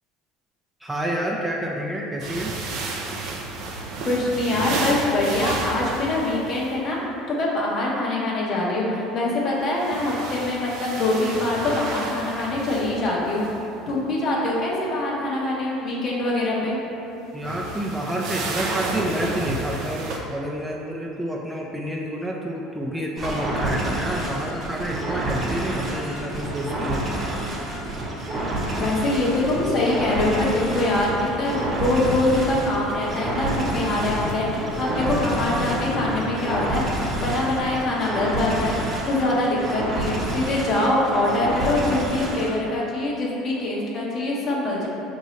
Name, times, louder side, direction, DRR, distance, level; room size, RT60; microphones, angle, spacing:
voice 1, 0.8-2.5 17.3-27.1, right 1 dB, 10° right, -2 dB, 0.4 m, -29 dB
sound 1, 2.2-6.8 9.6-13.6 17.3-20.2, right 3 dB, 65° right, 0.6 m, -31 dB
voice 2, 4.0-7.0 7.3-13.4 13.9-16.8 28.8-36.8 37.2-38.8 39.0-44.9, left 2 dB, 45° left, -4 dB, 1.0 m, -24 dB
sound 2, 23.2-42.5, right 1 dB, 30° right, 0.9 m, -29 dB
sound 3, 28.8-37.8, left 3 dB, 85° left, 0.4 m, -35 dB
5.3 x 2.7 x 3.1 m, 2.9 s
supercardioid pair, 95°, 0 cm